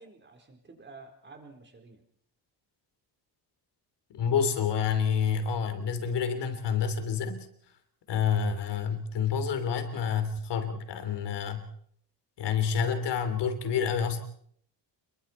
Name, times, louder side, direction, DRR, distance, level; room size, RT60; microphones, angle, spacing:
voice 1, 0.0-2.0 12.8-13.1, right 3 dB, 25° right, 4 dB, 4.1 m, -50 dB
voice 2, 4.1-7.5 8.1-11.7 12.4-14.2, left 7 dB, 70° left, 9 dB, 3.1 m, -28 dB
28.5 x 22.0 x 4.4 m, 0.65 s
cardioid pair, 140°, 43 cm